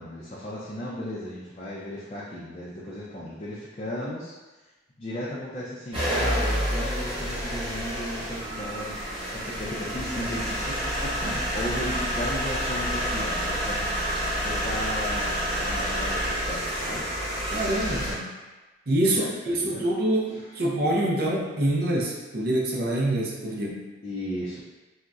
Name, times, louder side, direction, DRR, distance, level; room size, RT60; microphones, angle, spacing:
voice 1, 0.0-4.3 5.0-9.0 9.3-14.0 14.4-17.1 19.1-19.8 20.3-20.4 24.0-24.6, left 1 dB, 30° left, -7 dB, 0.4 m, -35 dB
sound 1, 5.9-18.1, equal, 25° right, 0.8 m, -29 dB
voice 2, 17.5-18.3 18.9-23.9, right 1 dB, 50° right, -2 dB, 0.5 m, -26 dB
3.7 x 2.1 x 2.3 m, 1.2 s
head